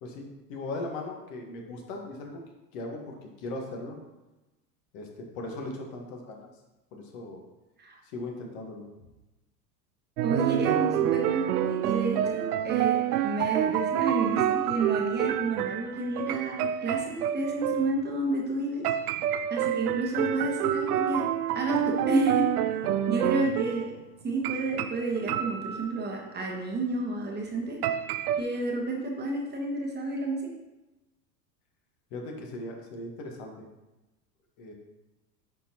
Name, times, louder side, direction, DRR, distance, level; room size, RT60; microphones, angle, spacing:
voice 1, 0.0-2.4 2.7-4.0 4.9-5.1 5.3-6.5 6.9-7.4 8.0-8.9 23.4-23.5 32.1-33.7 34.6-34.7, left 2 dB, 55° left, 1 dB, 1.5 m, -38 dB
voice 2, 10.2-18.8 19.5-21.3 21.5-22.5 23.1-23.9 24.2-27.8 28.4-30.5, right 2 dB, 20° right, 0 dB, 1.2 m, -30 dB
sound 1, 10.2-17.9 18.8-23.9 24.4-26.1 27.8-28.4, right 11 dB, 65° right, 0.5 m, -28 dB
9.8 x 4.4 x 2.9 m, 1.0 s
hypercardioid pair, 90°, 49 cm